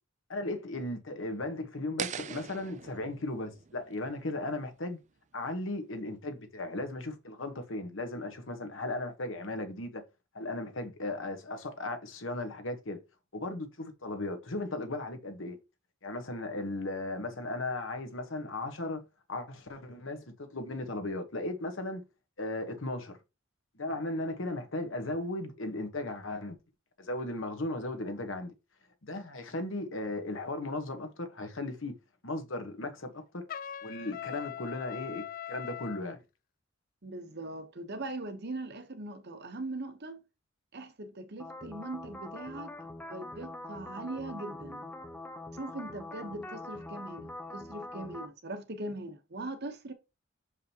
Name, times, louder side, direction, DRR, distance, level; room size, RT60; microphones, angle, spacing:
voice 1, 0.3-5.0 5.3-10.0 10.3-13.0 13.3-15.6 16.0-19.0 19.3-22.0 22.4-23.2 23.7-26.6 27.0-28.5 29.0-32.0 32.2-33.4 33.8-36.2, left 2 dB, 65° left, 1.2 m, -36 dB
sound 1, 2.0-5.0, right 8 dB, 35° right, 0.4 m, -42 dB
Trumpet, 33.5-36.0, left 10 dB, 45° left, 0.4 m, -41 dB
voice 2, 37.0-40.2 40.7-42.7 43.1-44.9 45.5-49.9, right 2 dB, 55° right, 1.0 m, -40 dB
sound 2, 41.4-48.3, left 2 dB, 10° left, 0.7 m, -43 dB
7.1 x 4.9 x 2.9 m
head